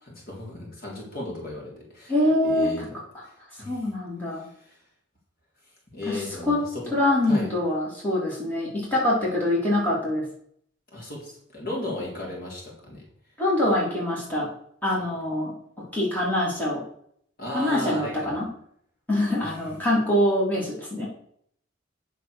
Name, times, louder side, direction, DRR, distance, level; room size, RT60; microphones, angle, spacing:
voice 1, 0.0-2.1 2.4-3.8 4.4-4.8 5.9-6.9 7.2-7.5 10.9-13.0 15.0-15.1 17.4-18.4, left 1 dB, 45° left, -2 dB, 3.7 m, -35 dB
voice 2, 2.1-2.9 3.6-4.5 6.1-6.6 6.9-10.3 13.4-14.5 14.8-16.8 17.5-18.5 19.1-21.1, left 1 dB, 10° left, -6 dB, 3.6 m, -24 dB
9.1 x 6.7 x 6.6 m, 0.66 s
head